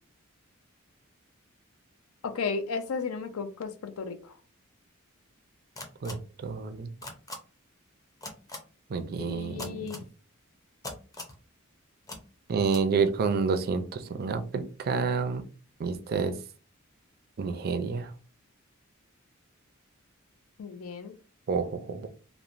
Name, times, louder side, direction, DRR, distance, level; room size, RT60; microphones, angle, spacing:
voice 1, 2.2-4.4 9.2-10.0 20.6-21.2, left 5 dB, 80° left, 9 dB, 0.4 m, -34 dB
sound 1, 5.8-6.1 7.0-7.4 8.2-8.6 9.6-10.0 10.8-11.4 12.1-12.2 12.7-12.8, left 2 dB, 15° left, 0.5 m, -39 dB
voice 2, 6.0-6.9 8.9-10.0 12.5-15.4 15.8-16.3 17.4-18.1 21.5-22.1, right 5 dB, 45° right, 8 dB, 0.4 m, -29 dB
3.0 x 2.0 x 2.5 m, 0.36 s
head